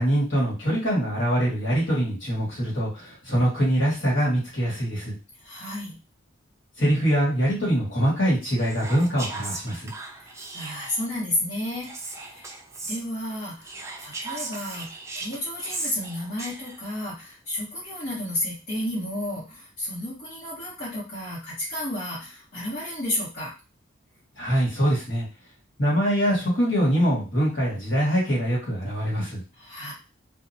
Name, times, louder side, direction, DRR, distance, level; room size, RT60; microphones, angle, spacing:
voice 1, 0.0-5.1 6.8-9.9 24.4-25.2 25.8-29.4, equal, 65° left, -5 dB, 1.5 m, -23 dB
voice 2, 5.4-5.9 10.1-12.6 12.9-13.7 14.0-23.5 29.5-29.9, left 1 dB, 50° left, -10 dB, 1.3 m, -32 dB
Whispering, 8.6-11.1 11.8-13.0 13.6-16.9, right 3 dB, 15° right, 0.3 m, -37 dB
2.8 x 2.3 x 2.6 m, 0.31 s
head